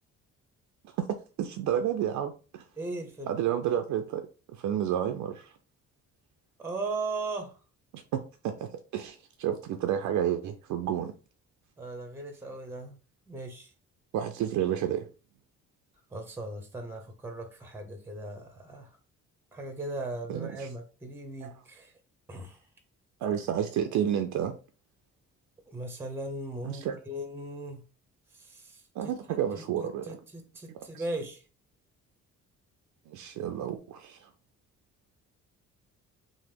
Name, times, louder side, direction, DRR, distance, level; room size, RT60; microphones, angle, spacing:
voice 1, 1.4-2.6 3.3-4.2 4.6-5.5 7.9-11.1 14.1-15.1 20.3-20.7 21.4-21.5 23.2-24.6 26.6-27.0 29.0-30.2 30.9-31.0 33.1-34.3, right 10 dB, 75° right, 0.4 m, -30 dB
voice 2, 2.8-3.3 6.6-7.6 11.8-13.0 13.3-13.7 16.1-18.9 19.5-21.9 22.3-22.6 25.7-27.8 28.3-29.1 29.8-31.4, right 2 dB, 10° right, 0.7 m, -38 dB
3.0 x 2.0 x 3.4 m
cardioid pair, 90°, 30 cm